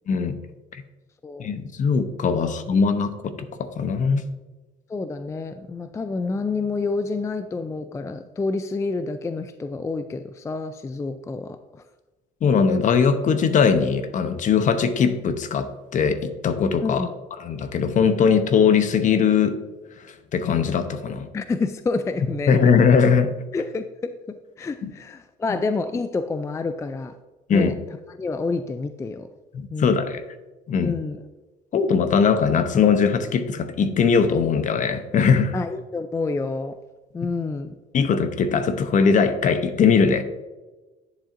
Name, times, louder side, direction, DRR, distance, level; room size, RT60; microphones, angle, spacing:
voice 1, 1.4-4.2 12.4-17.1 17.4-19.6 20.3-21.3 22.5-23.3 24.8-24.9 27.5-27.7 29.5-30.2 30.7-31.0 31.7-35.5 37.9-40.2, left 6 dB, 50° left, 10 dB, 0.8 m, -20 dB
voice 2, 4.9-11.8 16.8-17.1 21.3-22.6 23.5-27.1 27.5-27.7 28.1-29.3 29.7-30.0 30.8-31.2 35.5-36.8 37.1-37.7, left 3 dB, 15° left, 10 dB, 0.3 m, -28 dB
10.5 x 7.2 x 2.5 m, 1.2 s
cardioid pair, 110°, 17 cm